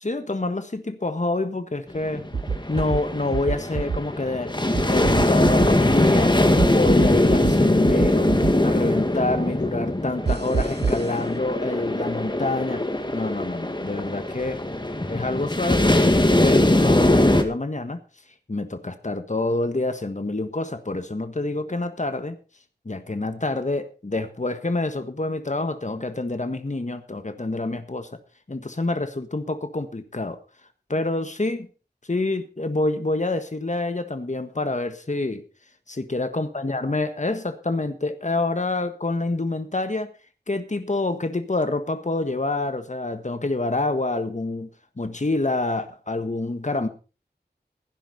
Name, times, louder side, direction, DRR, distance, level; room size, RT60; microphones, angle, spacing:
voice 1, 0.0-2.2 2.7-4.5 4.8-6.3 6.7-12.8 13.1-14.6 15.1-18.0 18.5-22.4 22.8-28.1 28.5-30.4 30.9-31.7 32.1-35.4 35.9-40.1 40.5-44.7 45.0-46.9, left 2 dB, 45° left, 9 dB, 1.5 m, -27 dB
sound 1, 1.9-17.4, left 1 dB, 25° left, 1.8 m, -21 dB
sound 2, 2.3-3.0 3.3-4.0 4.7-5.7 6.6-7.5 7.8-8.5 10.3-11.1, right 5 dB, 75° right, 0.6 m, -25 dB
16.5 x 10.0 x 4.2 m, 0.34 s
wide cardioid pair, 55°, 17 cm